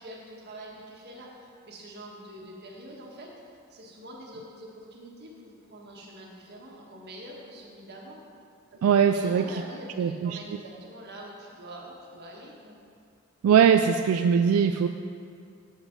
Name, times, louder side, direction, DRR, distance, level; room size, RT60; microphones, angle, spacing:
voice 1, 0.0-8.2 9.0-12.8, right 1 dB, 50° right, -2 dB, 1.4 m, -45 dB
voice 2, 8.8-9.5 10.0-10.1 13.4-14.9, right 7 dB, 85° right, 9 dB, 0.3 m, -20 dB
7.9 x 6.1 x 5.2 m, 2.3 s
head